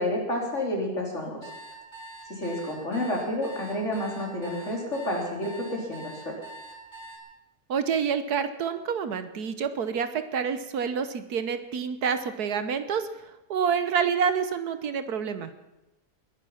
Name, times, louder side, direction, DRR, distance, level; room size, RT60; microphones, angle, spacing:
voice 1, 0.0-1.5 2.3-6.4, left 1 dB, 45° left, -1 dB, 4.0 m, -30 dB
sound 1, 1.4-7.2, right 2 dB, 30° left, 3.7 m, -44 dB
voice 2, 7.7-15.5, right 6 dB, 70° right, 10 dB, 1.5 m, -28 dB
21.0 x 11.0 x 5.8 m, 0.99 s
omnidirectional pair, 1.7 m